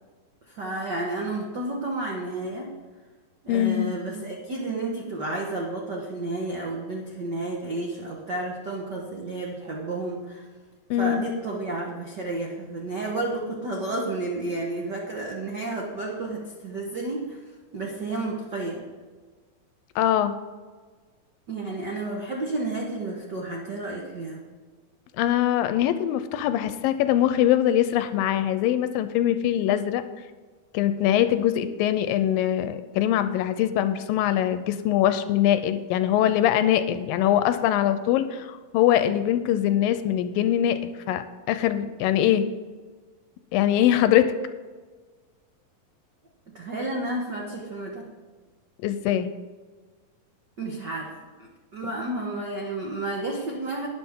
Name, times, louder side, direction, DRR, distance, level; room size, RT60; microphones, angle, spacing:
voice 1, 0.5-2.7 3.4-10.5 11.0-17.4 17.7-18.8 21.5-24.4 46.5-48.1 50.6-51.1 51.4-53.9, right 2 dB, 85° right, -1 dB, 0.9 m, -31 dB
voice 2, 3.5-4.0 10.9-11.2 20.0-20.4 25.2-30.0 30.7-42.5 43.5-44.3 48.8-49.3, left 11 dB, 80° left, 11 dB, 2.2 m, -22 dB
12.5 x 9.9 x 3.7 m, 1.4 s
omnidirectional pair, 4.2 m